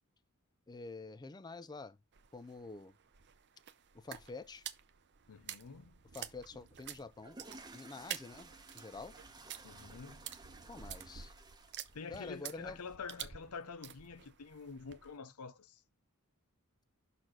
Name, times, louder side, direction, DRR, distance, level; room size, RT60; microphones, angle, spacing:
voice 1, 0.7-2.0 2.3-2.9 3.9-4.6 6.1-7.4 7.7-9.1 10.7-11.3 12.1-12.8, left 3 dB, 20° left, 0.4 m, -47 dB
sound 1, 2.1-15.2, right 10 dB, 55° right, 0.7 m, -50 dB
voice 2, 5.3-6.0 9.6-10.3 11.9-15.8, left 5 dB, 90° left, 0.7 m, -47 dB
sound 2, 7.0-13.0, right 3 dB, 20° right, 0.9 m, -55 dB
6.0 x 4.2 x 6.3 m
head